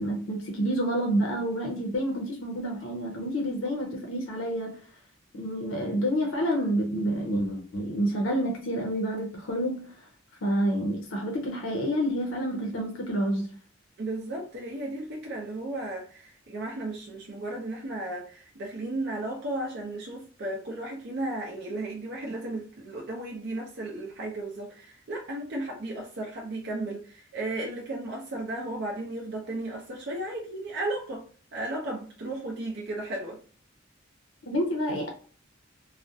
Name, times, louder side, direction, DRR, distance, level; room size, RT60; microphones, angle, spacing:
voice 1, 0.0-4.8 5.3-9.9 10.4-13.5 34.4-35.1, equal, 85° left, 0.5 m, -28 dB
voice 2, 14.0-31.3 31.5-33.4, right 2 dB, 55° right, 0.5 m, -34 dB
2.3 x 2.1 x 2.6 m
head